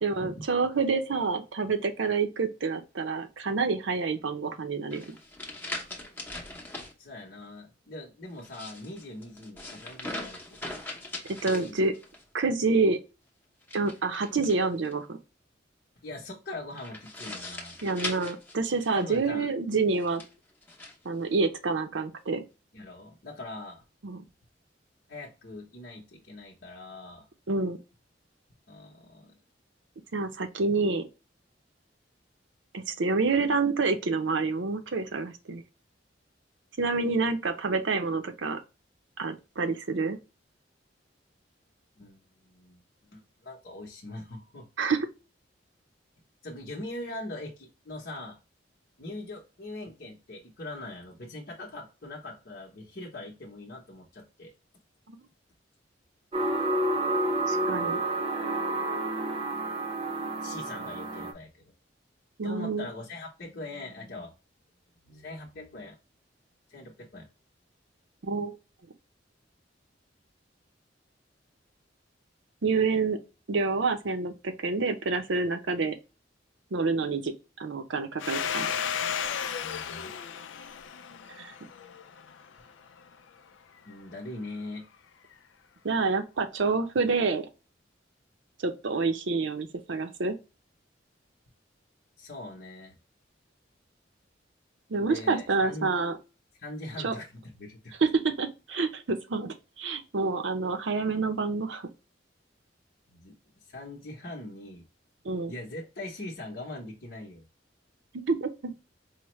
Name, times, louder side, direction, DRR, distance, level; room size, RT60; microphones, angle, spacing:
voice 1, 0.0-5.2 11.4-11.9 12.3-13.0 13.7-15.2 17.8-20.2 21.0-22.4 24.0-24.2 27.5-27.8 30.1-31.1 32.7-35.6 36.8-38.6 39.2-40.2 44.8-45.1 55.1-55.2 57.4-58.0 62.4-62.9 68.2-68.6 72.6-73.2 73.5-76.0 76.7-77.3 77.6-78.9 81.4-81.5 85.8-87.5 88.6-90.4 94.9-96.2 97.0-97.1 98.0-101.8 105.2-105.5 108.1-108.7, right 4 dB, 80° right, 0.6 m, -28 dB
sound 1, 4.9-6.9 8.3-12.2 13.6-14.9 16.8-19.2 19.9-21.0, left 2 dB, 10° left, 0.8 m, -40 dB
voice 2, 7.0-10.6 11.6-11.8 16.0-17.8 18.9-19.5 22.7-23.8 25.1-27.3 28.7-29.3 42.0-42.8 43.1-44.7 46.4-48.4 49.0-54.5 60.4-61.7 62.4-64.3 65.1-66.0 66.7-67.3 79.6-80.1 83.8-84.9 92.2-92.9 95.0-95.9 96.6-98.0 103.1-103.4 103.7-104.8 105.5-107.4, left 2 dB, 55° left, 0.9 m, -42 dB
sound 2, 56.3-61.3, right 2 dB, 30° right, 0.6 m, -29 dB
Domestic sounds home sounds, 78.2-82.6, left 8 dB, 90° left, 0.4 m, -34 dB
4.9 x 2.1 x 3.0 m
head